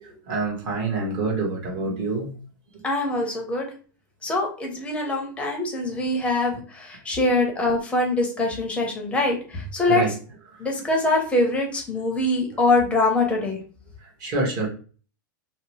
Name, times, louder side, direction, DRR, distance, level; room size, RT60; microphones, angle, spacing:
voice 1, 0.3-2.3 9.9-10.1 14.2-14.7, right 3 dB, 40° right, -1 dB, 1.1 m, -26 dB
voice 2, 2.8-3.7 4.2-10.1 10.6-13.6, left 2 dB, 10° left, 1 dB, 0.7 m, -23 dB
2.8 x 2.0 x 3.0 m, 0.39 s
supercardioid pair, 140°, 11 cm